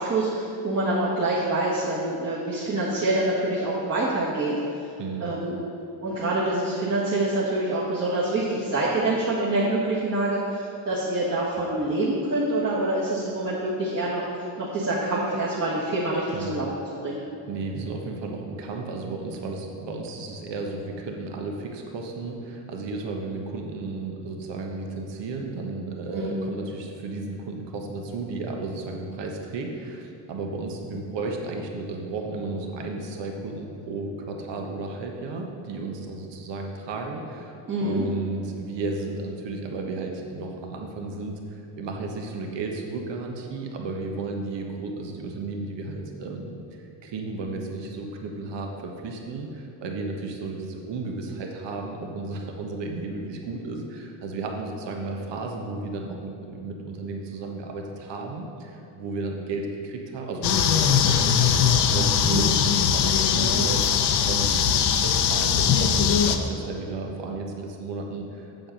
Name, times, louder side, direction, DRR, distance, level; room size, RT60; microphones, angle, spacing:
voice 1, 0.0-4.5 5.2-5.5 6.0-14.3 14.6-16.7 17.0-17.2 26.1-26.4 37.7-38.0 62.2-62.5, right 2 dB, 35° right, -7 dB, 1.7 m, -26 dB
voice 2, 5.0-5.3 16.3-16.6 17.5-37.5 37.8-46.6 47.0-68.7, right 3 dB, 70° right, 1 dB, 1.3 m, -33 dB
sound 1, 60.4-66.4, left 7 dB, 60° left, 0.8 m, -21 dB
7.7 x 7.6 x 5.3 m, 2.7 s
cardioid pair, 110°, 44 cm